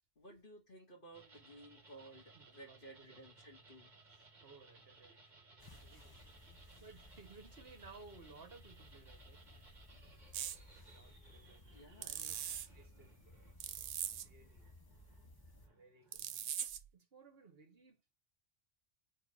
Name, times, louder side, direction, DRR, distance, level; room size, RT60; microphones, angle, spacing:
voice 1, 0.2-4.0 11.7-12.2, right 1 dB, 45° left, 2.5 m, -56 dB
sound 1, 1.1-16.7, right 3 dB, 40° right, 1.6 m, -63 dB
voice 2, 2.3-3.2 4.4-6.2 6.8-9.4 10.9-12.3 12.7-14.7 15.7-16.3 16.9-18.1, right 4 dB, 55° right, 1.3 m, -60 dB
sound 2, 5.6-15.7, left 1 dB, 20° left, 1.1 m, -59 dB
sound 3, 10.3-10.6 12.0-12.7 13.6-14.3 16.1-16.9, right 10 dB, 85° right, 1.0 m, -41 dB
4.5 x 4.4 x 4.8 m
omnidirectional pair, 1.2 m